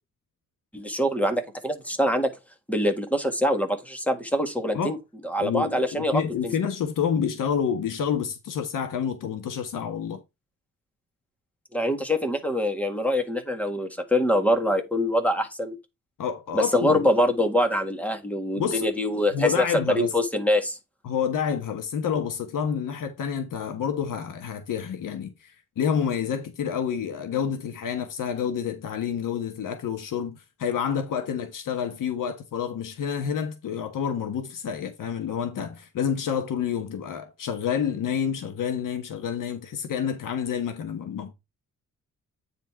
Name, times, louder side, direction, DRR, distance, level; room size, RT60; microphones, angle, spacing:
voice 1, 0.7-2.3 2.7-5.0 5.2-6.5 11.7-15.8 16.5-20.8, left 1 dB, 5° left, 1.7 m, -24 dB
voice 2, 5.4-10.2 16.2-17.0 18.6-18.9 19.3-20.1 21.0-41.3, left 7 dB, 80° left, 1.3 m, -28 dB
9.2 x 4.2 x 4.5 m
wide cardioid pair, 130°, 32 cm